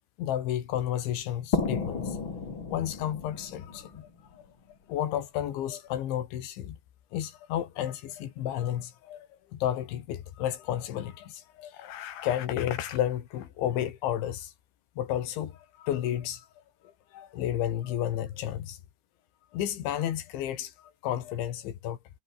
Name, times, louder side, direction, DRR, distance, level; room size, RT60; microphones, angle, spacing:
voice 1, 0.2-2.2 2.7-4.4 4.9-6.8 7.1-14.5 15.0-16.5 16.8-18.8 19.5-22.0, left 11 dB, 80° left, 4.5 m, -32 dB
sound 1, 1.5-5.0, left 4 dB, 30° left, 3.4 m, -33 dB
omnidirectional pair, 5.3 m